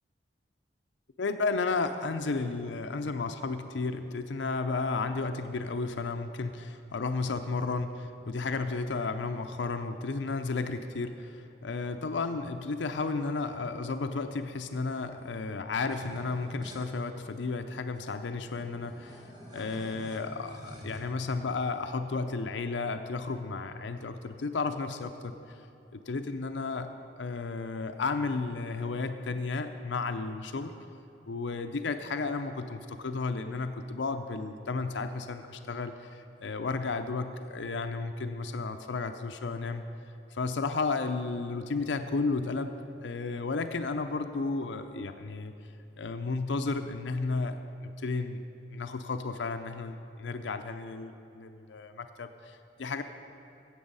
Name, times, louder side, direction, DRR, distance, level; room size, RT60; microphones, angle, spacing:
voice 1, 1.2-19.3 19.5-25.7 25.9-26.9 27.2-30.7 31.3-39.8 40.3-42.7 43.0-45.7 46.0-48.4 48.7-53.0, left 3 dB, 80° left, 8 dB, 0.6 m, -33 dB
sound 1, 15.9-16.9 17.6-17.7 17.9-21.0, equal, 25° right, 1.8 m, -47 dB
15.0 x 7.9 x 5.4 m, 2.9 s
head